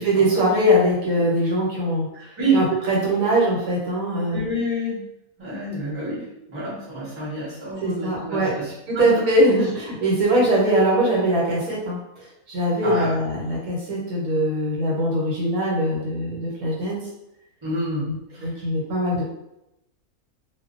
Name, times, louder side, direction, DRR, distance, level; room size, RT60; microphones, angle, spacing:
voice 1, 0.0-2.1 2.5-4.4 7.8-8.5 8.9-17.0 18.1-18.2 18.4-19.2, right 1 dB, 75° right, -3 dB, 1.1 m, -21 dB
voice 2, 2.1-2.6 4.3-5.0 5.4-9.2 9.6-9.7 12.8-13.2 17.6-18.5, right 1 dB, 25° right, -7 dB, 0.6 m, -28 dB
2.4 x 2.1 x 2.4 m, 0.86 s
omnidirectional pair, 1.6 m